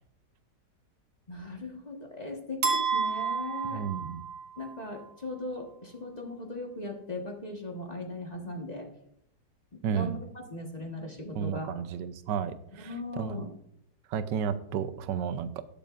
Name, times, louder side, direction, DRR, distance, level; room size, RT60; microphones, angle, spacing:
voice 1, 1.3-3.8 4.6-8.9 9.9-11.7 12.8-13.5, left 2 dB, 25° left, 1 dB, 1.4 m, -38 dB
sound 1, 2.6-4.8, right 6 dB, 65° right, 2.1 m, -30 dB
voice 2, 3.7-4.2 9.8-10.2 11.3-13.4 14.1-15.6, right 7 dB, 90° right, 12 dB, 1.3 m, -32 dB
19.0 x 6.7 x 2.5 m, 0.74 s
omnidirectional pair, 1.9 m